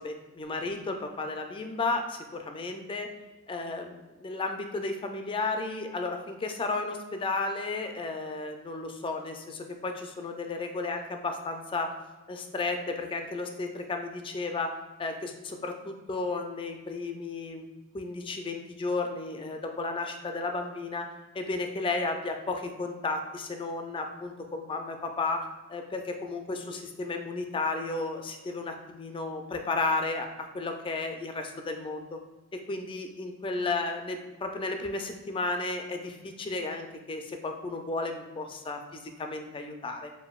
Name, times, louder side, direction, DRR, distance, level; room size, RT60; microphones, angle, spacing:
voice 1, 0.0-3.1 3.5-11.9 12.3-14.7 15.0-17.7 17.9-21.1 21.3-25.4 25.7-32.2 32.5-40.1, left 3 dB, 25° left, 5 dB, 0.3 m, -33 dB
6.9 x 2.6 x 2.3 m, 1.2 s
head